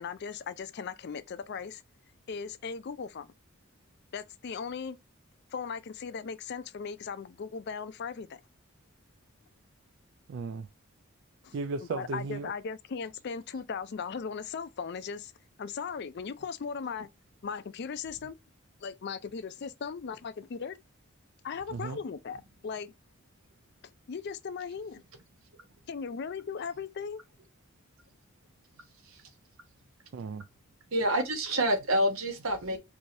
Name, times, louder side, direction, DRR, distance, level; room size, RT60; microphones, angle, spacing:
voice 1, 0.0-1.8 2.3-3.3 4.1-5.0 5.5-8.4 11.4-11.6 11.9-15.3 15.6-17.1 17.4-18.4 18.8-20.8 21.4-22.9 24.1-25.0 25.9-27.2, left 6 dB, 50° left, 0.4 m, -38 dB
voice 2, 10.3-10.7 11.5-12.5 21.7-22.0 30.1-30.5, right 4 dB, 60° right, 0.3 m, -35 dB
voice 3, 30.9-32.8, right 1 dB, 85° right, 1.0 m, -27 dB
4.6 x 2.7 x 2.6 m
head